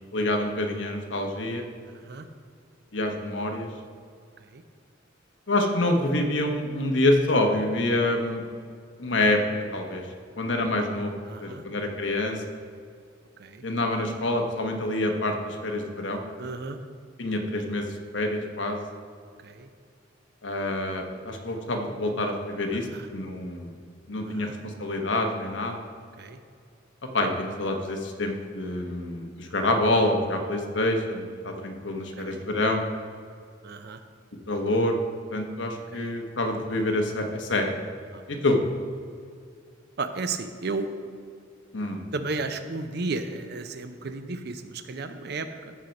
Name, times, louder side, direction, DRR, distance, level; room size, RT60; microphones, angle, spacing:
voice 1, 0.1-1.6 2.9-3.7 5.5-8.4 9.0-9.4 9.7-10.0 10.4-11.1 11.4-12.4 13.6-16.2 17.2-17.9 18.1-18.8 20.4-23.7 24.1-25.8 27.1-32.8 34.5-35.0 35.3-37.7 38.3-38.6 41.7-42.0, left 1 dB, 70° left, 4 dB, 1.1 m, -26 dB
voice 2, 1.8-2.3 4.4-4.6 11.2-11.6 13.4-13.6 16.4-16.8 19.4-19.7 22.9-23.1 24.2-24.5 26.2-26.4 32.0-32.4 33.6-34.0 35.9-36.0 38.1-38.2 40.0-40.9 42.1-45.7, right 3 dB, 55° right, 9 dB, 0.6 m, -34 dB
13.5 x 4.5 x 5.3 m, 2.2 s
head